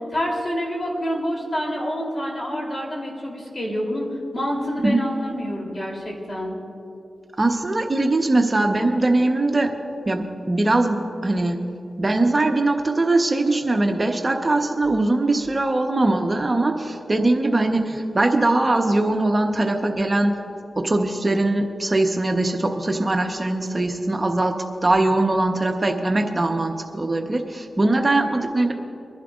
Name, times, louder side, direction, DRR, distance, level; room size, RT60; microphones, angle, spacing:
voice 1, 0.1-4.1 4.3-6.5, equal, 45° left, -1 dB, 3.3 m, -27 dB
voice 2, 7.4-9.7 10.1-11.6 12.0-20.4 20.8-28.7, right 2 dB, 35° right, 4 dB, 1.1 m, -21 dB
25.0 x 11.0 x 2.5 m, 2.8 s
cardioid pair, 50°, 0 cm